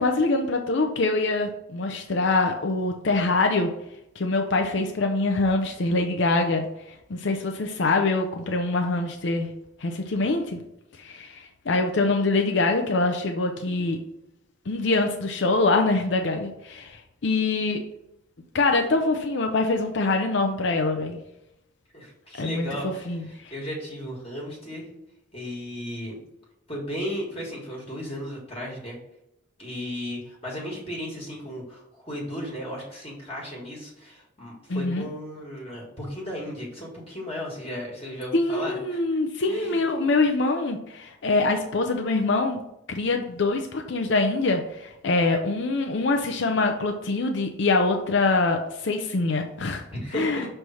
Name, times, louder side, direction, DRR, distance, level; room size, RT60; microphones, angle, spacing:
voice 1, 0.0-3.7 4.2-9.5 9.8-10.6 11.0-14.0 14.7-17.8 18.5-21.2 22.4-23.5 34.7-35.0 38.3-42.6 42.9-49.8 50.1-50.5, left 3 dB, 60° left, 4 dB, 0.6 m, -24 dB
voice 2, 21.9-24.9 25.3-26.2 26.7-29.0 29.6-39.2 39.4-39.8 49.9-50.5, equal, 30° left, -3 dB, 1.5 m, -35 dB
6.1 x 3.3 x 5.5 m, 0.85 s
head